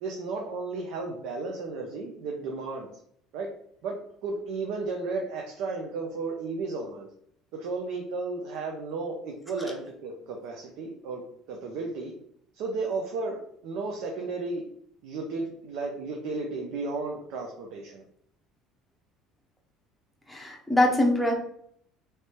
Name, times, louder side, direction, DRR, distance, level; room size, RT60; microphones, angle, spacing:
voice 1, 0.0-2.9 3.3-3.5 3.8-3.9 4.2-7.1 7.5-11.2 11.5-12.1 12.5-14.6 15.0-18.0, right 3 dB, 65° right, 1 dB, 0.7 m, -33 dB
voice 2, 20.3-21.3, left 1 dB, ahead, 1 dB, 0.7 m, -23 dB
3.3 x 3.2 x 4.3 m, 0.67 s
cardioid pair, 165°, 0 cm